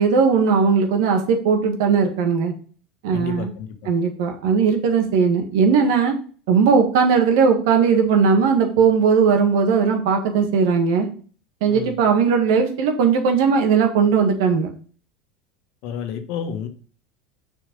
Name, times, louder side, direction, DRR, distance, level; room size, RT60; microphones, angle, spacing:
voice 1, 0.0-2.5 3.0-3.5 3.9-6.1 6.5-11.1 11.6-14.7, right 6 dB, 75° right, 4 dB, 1.8 m, -18 dB
voice 2, 3.1-3.9 11.7-11.9 15.8-16.7, left 7 dB, 65° left, 7 dB, 1.4 m, -30 dB
6.7 x 4.7 x 5.3 m, 0.41 s
hypercardioid pair, 95°, 2 cm